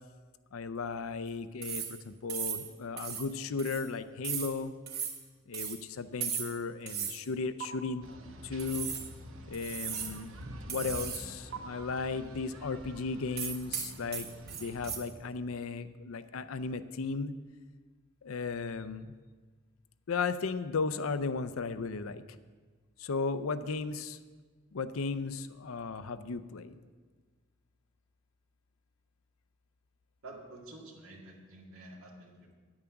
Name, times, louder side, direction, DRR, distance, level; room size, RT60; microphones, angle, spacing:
voice 1, 0.5-4.7 5.5-8.0 8.4-8.9 9.5-10.3 10.7-17.3 18.2-19.1 20.1-22.2 23.0-24.2 24.7-26.8, left 4 dB, 80° left, 12 dB, 0.5 m, -35 dB
sound 1, 1.6-2.0 2.3-2.7 3.0-3.3 3.6-3.9 4.2-4.5 4.9-5.2 5.5-5.8 6.2-6.6 6.9-7.2 7.6-7.7 8.6-9.1 9.5-10.2 10.7-11.3 11.5-11.6 13.4-15.0, right 8 dB, 50° right, 1.2 m, -36 dB
sound 2, 8.0-14.9, equal, 70° right, 1.0 m, -48 dB
voice 2, 30.2-32.6, right 2 dB, 90° right, 0 dB, 2.0 m, -49 dB
9.7 x 8.8 x 5.9 m, 1.4 s
head